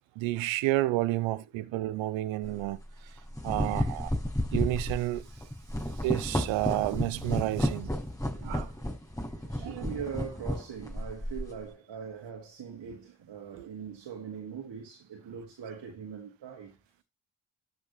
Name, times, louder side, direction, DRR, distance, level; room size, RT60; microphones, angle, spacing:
voice 1, 0.2-2.8 3.4-4.1 4.5-5.3 6.0-7.9 8.4-8.7 9.6-9.9, right 17 dB, 90° right, 0.7 m, -30 dB
voice 2, 1.3-1.7 8.4-16.8, right 7 dB, 65° right, 2.2 m, -42 dB
sound 1, 2.4-2.6 3.2-11.6, equal, 10° left, 5.9 m, -32 dB
13.0 x 6.2 x 3.1 m
supercardioid pair, 40°, 45 cm